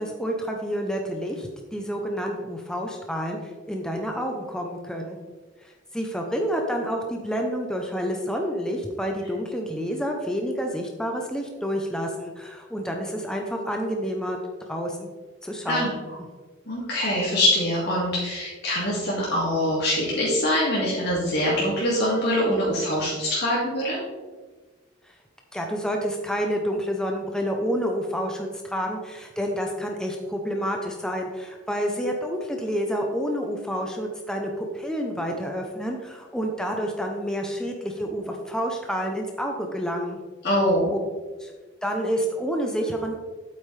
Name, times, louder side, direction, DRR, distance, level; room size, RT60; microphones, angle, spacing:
voice 1, 0.0-3.4 3.7-5.2 5.9-14.4 14.7-15.1 15.4-16.0 25.5-40.2 40.9-41.0 41.4-41.5 41.8-43.1, equal, 5° left, 1 dB, 0.7 m, -29 dB
voice 2, 16.7-24.0 40.4-40.9, left 1 dB, 55° left, -6 dB, 2.1 m, -24 dB
8.7 x 8.2 x 3.4 m, 1.3 s
head